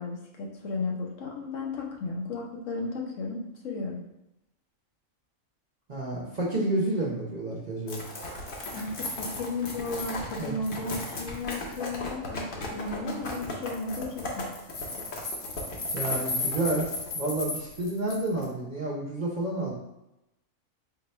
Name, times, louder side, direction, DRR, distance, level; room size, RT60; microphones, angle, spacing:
voice 1, 0.0-4.0 8.7-14.4, left 3 dB, 75° left, -1 dB, 1.1 m, -34 dB
voice 2, 5.9-8.0 8.7-8.8 10.4-10.5 15.9-16.9 17.1-19.7, right 2 dB, 45° right, -3 dB, 0.7 m, -30 dB
sound 1, 7.9-18.4, left 2 dB, 50° left, 0.8 m, -35 dB
4.0 x 2.2 x 4.2 m, 0.91 s
omnidirectional pair, 1.3 m